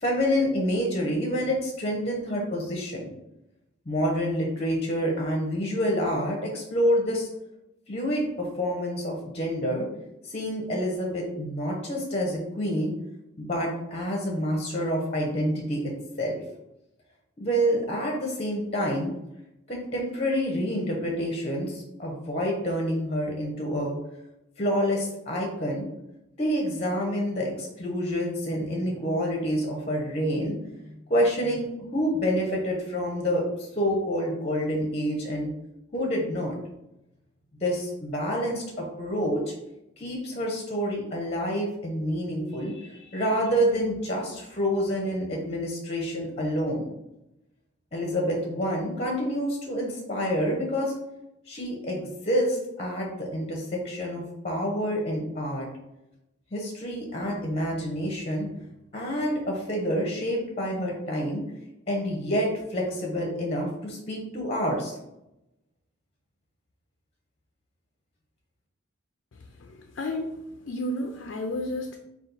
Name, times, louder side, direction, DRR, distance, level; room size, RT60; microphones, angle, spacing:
voice 1, 0.0-3.1 3.9-7.3 7.9-9.9 10.2-12.9 13.4-15.9 16.2-16.4 17.4-19.1 19.7-24.0 24.6-25.9 26.4-30.6 30.8-35.5 35.9-36.6 37.6-39.5 40.0-46.9 47.9-50.9 51.5-55.7 56.5-58.5 58.9-61.5 61.9-64.9, equal, 30° left, 0 dB, 0.7 m, -28 dB
voice 2, 69.6-70.3 70.7-72.0, left 1 dB, 65° left, 3 dB, 0.4 m, -32 dB
4.1 x 2.4 x 3.9 m, 0.88 s
head